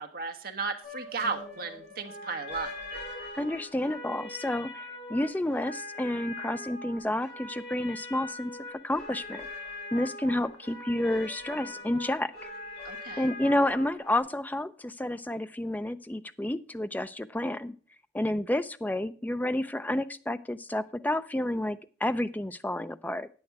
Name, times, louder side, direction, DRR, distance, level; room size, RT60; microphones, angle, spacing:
voice 1, 0.0-2.7 12.8-13.3, right 4 dB, 55° right, 5 dB, 1.2 m, -35 dB
sound 1, 0.8-14.2, left 2 dB, 60° left, 6.7 m, -42 dB
voice 2, 3.3-9.5 9.9-12.5 13.2-17.7 18.1-23.3, left 1 dB, 10° left, 12 dB, 0.4 m, -30 dB
9.6 x 8.6 x 4.7 m, 0.41 s
head